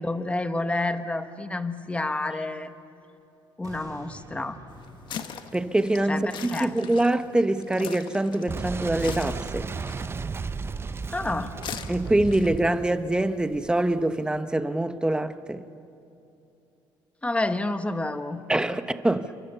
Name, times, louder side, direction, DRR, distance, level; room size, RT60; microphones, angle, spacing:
voice 1, 0.0-2.7 3.6-4.6 6.1-6.7 11.1-11.5 17.2-18.4, left 2 dB, 15° left, 1.4 m, -29 dB
sound 1, 3.6-8.7 9.2-9.3, right 2 dB, 40° right, 3.9 m, -51 dB
sound 2, 4.7-14.4, left 7 dB, 55° left, 1.5 m, -43 dB
voice 2, 5.5-6.3 6.6-9.7 11.9-15.6 18.5-19.3, right 1 dB, 10° right, 1.1 m, -24 dB
Boom, 8.5-14.0, right 5 dB, 25° right, 0.7 m, -34 dB
28.5 x 24.0 x 6.9 m
cardioid pair, 95°, 9 cm